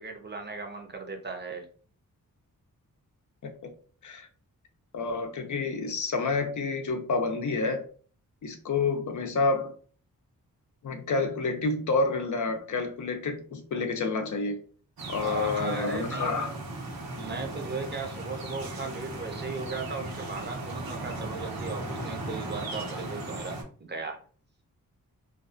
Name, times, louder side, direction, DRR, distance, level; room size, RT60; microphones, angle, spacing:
voice 1, 0.0-1.6 15.2-16.5 17.2-24.2, right 4 dB, 30° right, 0.6 m, -37 dB
voice 2, 4.9-7.8 8.4-9.8 10.8-14.6 15.1-16.5, left 3 dB, 60° left, 0.5 m, -29 dB
sound 1, 15.0-23.6, right 2 dB, 85° right, 0.9 m, -37 dB
2.5 x 2.3 x 2.4 m
wide cardioid pair, 95°, 35 cm